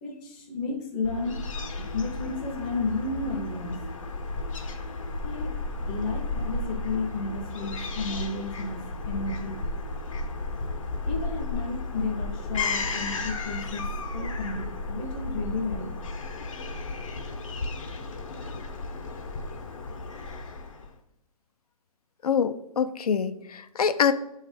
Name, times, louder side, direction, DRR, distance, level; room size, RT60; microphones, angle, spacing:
voice 1, 0.0-1.4 1.8-3.8 5.2-5.6 5.9-9.6 11.1-13.8 14.1-15.9, left 3 dB, 15° left, 1 dB, 0.6 m, -32 dB
Fowl / Gull seagull, 1.0-20.9, left 3 dB, 55° left, 0.9 m, -33 dB
voice 2, 22.2-24.1, left 7 dB, 80° left, 11 dB, 0.6 m, -25 dB
7.8 x 3.2 x 4.9 m, 0.82 s
hypercardioid pair, 170°, 19 cm